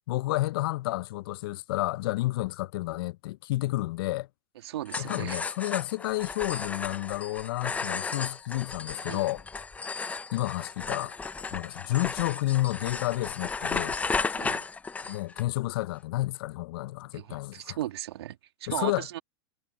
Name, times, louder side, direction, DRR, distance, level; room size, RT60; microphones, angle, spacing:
voice 1, 0.1-4.3 5.0-9.4 10.3-11.2 11.5-14.0 15.1-17.8 18.7-19.1, left 18 dB, 60° left, 0.6 m, -30 dB
voice 2, 4.6-5.4 9.1-9.2 14.3-14.6 17.1-19.2, right 13 dB, 70° right, 2.5 m, -36 dB
sound 1, 4.9-15.4, left 4 dB, 10° left, 0.5 m, -34 dB
hypercardioid pair, 115°, 14 cm